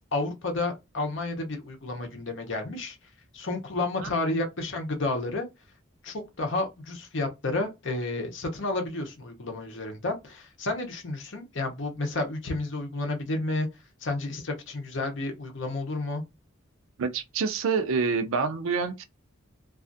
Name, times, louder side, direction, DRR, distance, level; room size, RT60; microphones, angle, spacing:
voice 1, 0.1-3.0 3.3-5.5 6.0-13.7 14.0-16.2, left 2 dB, 60° left, 0.7 m, -31 dB
voice 2, 17.0-19.0, right 5 dB, 75° right, 0.4 m, -27 dB
2.4 x 2.4 x 2.5 m
head